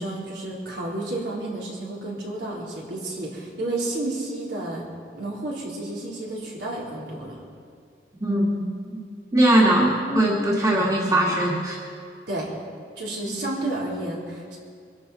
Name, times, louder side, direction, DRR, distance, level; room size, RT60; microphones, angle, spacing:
voice 1, 0.0-4.8 5.1-7.4 12.3-12.5 13.0-14.6, right 2 dB, 70° right, -4 dB, 3.9 m, -31 dB
voice 2, 8.2-9.0 9.3-11.8 13.3-13.4, right 1 dB, 20° right, -4 dB, 2.1 m, -21 dB
24.5 x 12.0 x 4.4 m, 2.3 s
head